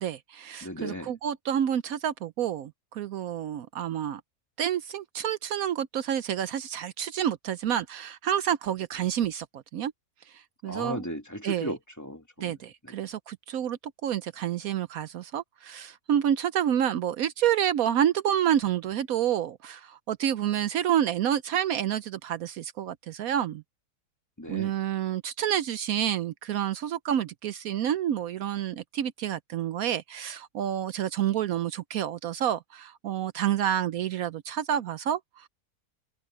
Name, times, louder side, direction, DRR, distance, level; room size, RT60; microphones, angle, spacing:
voice 1, 0.0-4.2 4.6-9.9 10.3-11.1 11.4-11.7 12.4-23.6 24.5-35.5, right 10 dB, 75° right, 1.1 m, -29 dB
voice 2, 0.6-1.1 10.7-12.5 12.8-13.0 24.4-24.7, equal, 10° left, 2.6 m, -36 dB
omnidirectional pair, 1.6 m